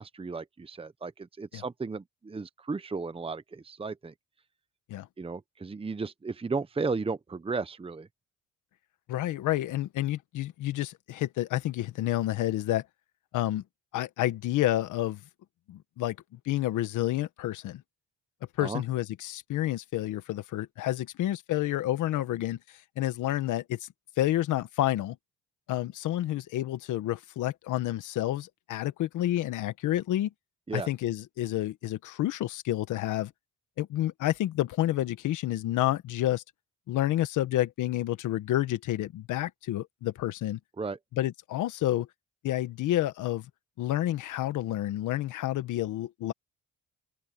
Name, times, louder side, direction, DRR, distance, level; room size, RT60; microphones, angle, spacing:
voice 1, 0.0-4.1 5.2-8.1 18.6-18.8 30.7-30.9 40.8-41.0, right 4 dB, 20° right, 0.9 m, -34 dB
voice 2, 9.1-12.8 13.3-13.6 13.9-15.2 15.7-17.8 18.6-22.6 23.0-23.9 24.2-25.2 25.7-30.3 30.7-33.3 33.8-36.4 36.9-40.6 41.1-42.1 42.4-43.5 43.8-46.3, left 14 dB, 85° left, 1.5 m, -29 dB
open air
cardioid pair, 90°, 30 cm